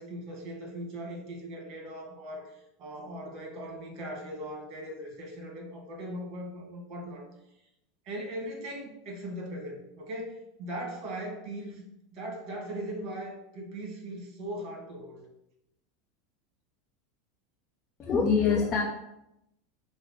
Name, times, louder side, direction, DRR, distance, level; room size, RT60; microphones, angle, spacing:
voice 1, 0.0-7.3 8.0-11.8 12.1-15.3, right 1 dB, 50° right, 1 dB, 1.5 m, -39 dB
voice 2, 18.0-18.8, left 5 dB, 35° left, -1 dB, 0.7 m, -24 dB
6.0 x 2.1 x 3.6 m, 0.84 s
hypercardioid pair, 100°, 0 cm